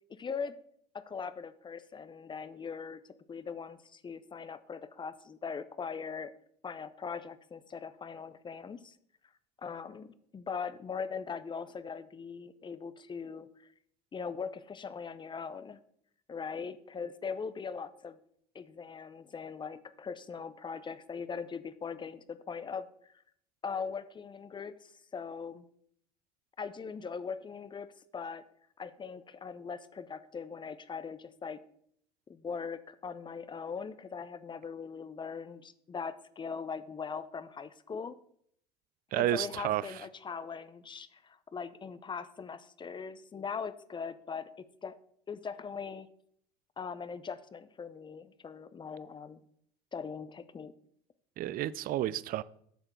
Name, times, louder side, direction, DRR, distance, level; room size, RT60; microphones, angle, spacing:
voice 1, 0.1-0.6 0.9-3.0 3.3-6.3 6.6-9.0 9.6-13.7 14.1-15.8 16.3-18.2 18.5-22.9 23.6-25.6 26.6-28.4 28.8-31.6 32.3-38.2 39.1-44.5 44.8-45.0 45.3-46.1 46.8-49.4 49.9-50.7, left 5 dB, 25° left, 0.6 m, -40 dB
voice 2, 39.1-40.0 51.4-52.4, right 13 dB, 45° right, 0.5 m, -31 dB
8.1 x 6.6 x 4.6 m
hypercardioid pair, 80°, 20 cm